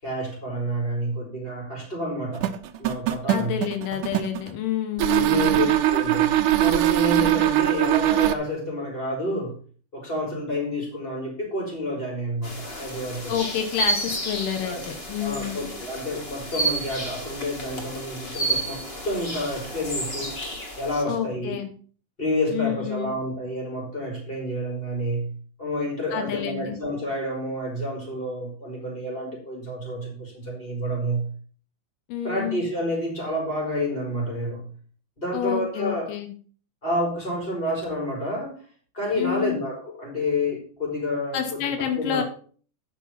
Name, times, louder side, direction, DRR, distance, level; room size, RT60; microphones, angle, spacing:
voice 1, 0.0-2.5 2.8-3.6 5.1-9.6 9.9-13.3 14.6-14.8 15.2-20.4 20.8-21.6 22.2-25.3 25.6-31.3 32.2-34.7 35.2-36.1 36.8-38.6 38.9-42.2, equal, 15° left, -2 dB, 4.5 m, -29 dB
sound 1, 2.4-4.5 5.0-8.3, right 13 dB, 75° right, 2.2 m, -21 dB
voice 2, 3.3-5.6 13.3-15.7 21.1-21.7 22.5-23.1 26.1-26.8 32.1-32.7 35.3-36.3 39.2-39.6 41.3-42.2, left 9 dB, 85° left, 7 dB, 2.8 m, -29 dB
sound 2, 12.4-21.0, right 2 dB, 30° left, 1.0 m, -31 dB
9.8 x 6.0 x 5.8 m, 0.43 s
omnidirectional pair, 3.8 m